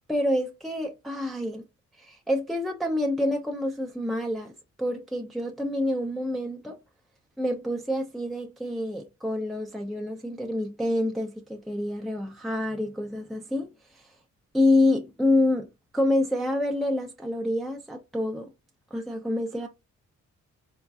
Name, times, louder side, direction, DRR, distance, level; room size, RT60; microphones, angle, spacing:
voice 1, 0.1-1.6 2.0-4.5 4.8-6.8 7.4-14.1 14.5-18.5 18.9-19.7, left 1 dB, ahead, 0.5 m, -27 dB
3.6 x 2.3 x 2.3 m
supercardioid pair, 55°, 32 cm